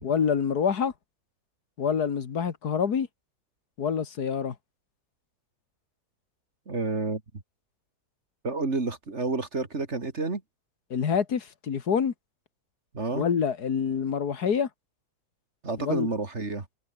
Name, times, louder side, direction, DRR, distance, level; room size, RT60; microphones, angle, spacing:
voice 1, 0.0-0.9 1.8-3.1 3.8-4.6 10.9-12.1 13.1-14.7 15.8-16.1, left 7 dB, 85° left, 2.2 m, -26 dB
voice 2, 6.7-7.2 8.4-10.4 12.9-13.3 15.6-16.6, right 3 dB, 45° right, 3.0 m, -29 dB
omnidirectional pair, 1.6 m